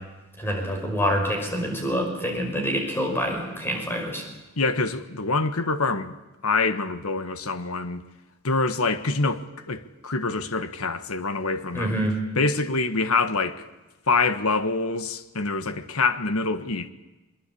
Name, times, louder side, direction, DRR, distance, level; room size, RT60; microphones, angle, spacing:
voice 1, 0.4-4.2 11.7-12.2, equal, 10° left, 5.7 m, -26 dB
voice 2, 4.6-6.2 6.4-8.0 8.4-12.0 12.3-13.7 14.1-16.9, left 3 dB, 80° left, 1.5 m, -25 dB
23.5 x 22.0 x 8.6 m
head